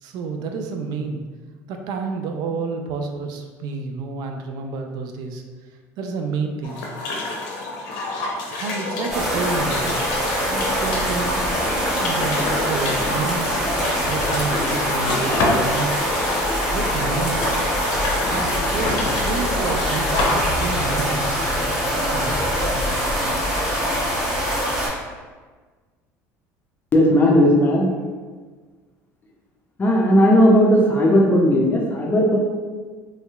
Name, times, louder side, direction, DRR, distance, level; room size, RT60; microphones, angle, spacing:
voice 1, 0.0-1.2 1.7-5.4 6.0-6.8 8.5-10.0 10.4-15.9 16.7-17.7 18.3-21.5 22.1-22.5, right 4 dB, 65° right, 4 dB, 0.4 m, -29 dB
sound 1, 6.6-21.0, left 2 dB, 70° left, 0.6 m, -28 dB
sound 2, 9.1-24.9, equal, 10° right, 1.4 m, -23 dB
voice 2, 26.9-27.9 29.8-32.4, equal, 30° left, -1 dB, 0.6 m, -16 dB
3.1 x 2.9 x 2.3 m, 1.4 s
supercardioid pair, 85°, 8 cm